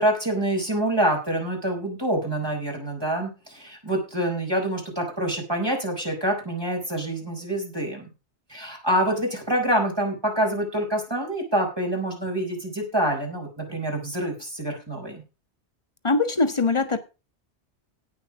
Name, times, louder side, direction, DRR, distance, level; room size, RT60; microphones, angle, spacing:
voice 1, 0.0-8.1 8.5-15.2, right 1 dB, 20° right, 5.0 m, -26 dB
voice 2, 16.0-17.0, left 3 dB, 25° left, 1.4 m, -22 dB
17.5 x 6.4 x 4.9 m
omnidirectional pair, 1.2 m